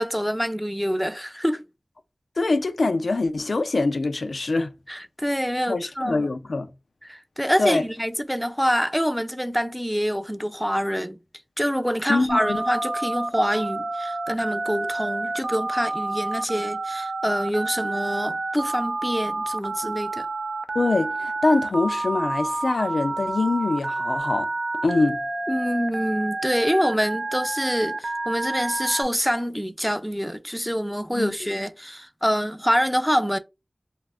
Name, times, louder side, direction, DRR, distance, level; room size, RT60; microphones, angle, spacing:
voice 1, 0.0-1.6 4.9-6.3 7.0-11.2 11.6-20.3 25.5-33.4, equal, ahead, 0.4 m, -26 dB
voice 2, 2.4-4.7 5.7-6.7 7.6-7.8 12.1-12.6 20.7-24.5 24.8-25.2 31.1-31.5, left 3 dB, 90° left, 0.3 m, -24 dB
Telephone, 12.3-29.0, right 2 dB, 75° right, 0.4 m, -29 dB
2.5 x 2.4 x 3.3 m
wide cardioid pair, 65°, 0 cm